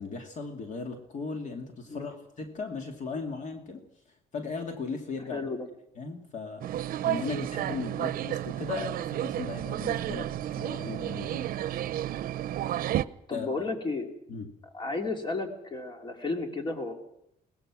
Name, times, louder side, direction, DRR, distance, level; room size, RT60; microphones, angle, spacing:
voice 1, 0.0-3.9 4.3-5.5 6.0-6.6 7.0-10.3 10.6-11.8 13.3-13.7 14.3-14.5, left 4 dB, 55° left, 4 dB, 2.5 m, -37 dB
voice 2, 5.3-5.7 13.3-14.1 14.7-16.9, left 3 dB, 30° left, 4 dB, 2.7 m, -33 dB
sound 1, 6.6-13.0, right 12 dB, 70° right, 0.7 m, -31 dB
22.0 x 19.0 x 6.2 m, 0.79 s
cardioid pair, 135°, 15 cm